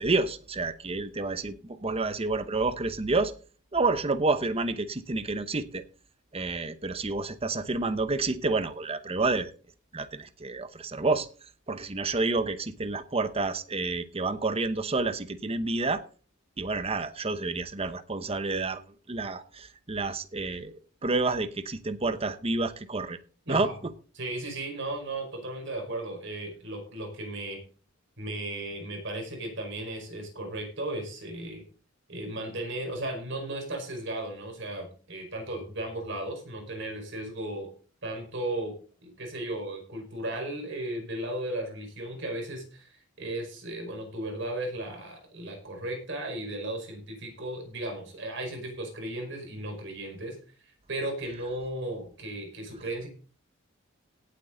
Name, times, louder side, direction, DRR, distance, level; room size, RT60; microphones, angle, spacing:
voice 1, 0.0-3.3 3.7-5.8 6.3-9.5 9.9-11.3 11.7-16.0 16.6-18.8 19.1-23.2 23.5-23.7, right 3 dB, 30° right, 11 dB, 0.9 m, -29 dB
voice 2, 24.2-27.6 28.2-31.6 32.1-37.7 38.0-38.7 39.0-50.4 50.6-53.1, right 1 dB, 60° right, 3 dB, 5.0 m, -35 dB
17.5 x 8.1 x 3.9 m, 0.40 s
head